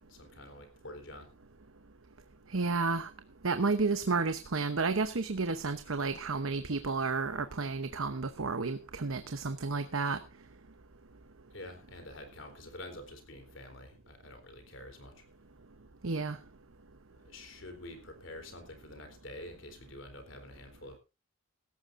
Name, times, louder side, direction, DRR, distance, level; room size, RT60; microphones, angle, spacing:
voice 1, 0.0-1.3 11.5-15.2 17.1-21.0, left 1 dB, 60° left, 3.8 m, -48 dB
voice 2, 2.5-3.1 3.4-10.2 16.0-16.4, right 4 dB, 75° right, 0.9 m, -31 dB
17.0 x 14.5 x 2.6 m
head